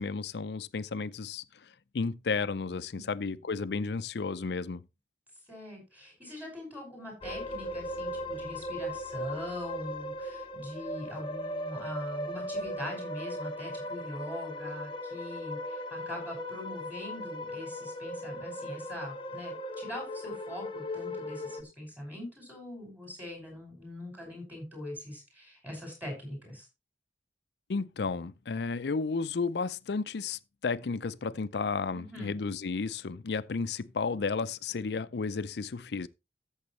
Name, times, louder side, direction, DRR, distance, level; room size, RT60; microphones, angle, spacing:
voice 1, 0.0-1.4 1.9-4.8 27.7-36.1, left 4 dB, 70° left, 0.5 m, -33 dB
voice 2, 2.9-3.5 5.4-26.7 31.9-32.3, left 1 dB, 10° right, 5.8 m, -42 dB
sound 1, 7.2-21.6, left 1 dB, 30° left, 0.9 m, -38 dB
13.5 x 7.2 x 3.1 m
head